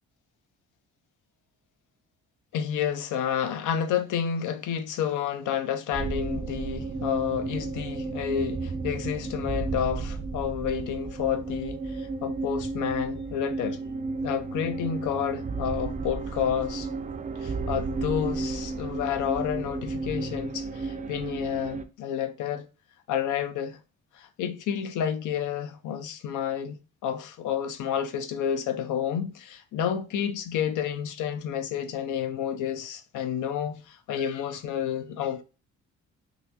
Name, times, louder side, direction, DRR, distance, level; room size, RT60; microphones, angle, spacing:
voice 1, 2.5-13.8 14.2-16.9 17.4-22.7 23.1-23.8 24.1-26.8 27.0-35.4, left 9 dB, 80° left, 0.7 m, -30 dB
sound 1, 5.9-21.9, right 3 dB, 25° right, 0.5 m, -33 dB
4.0 x 2.8 x 2.9 m
cardioid pair, 90°, 30 cm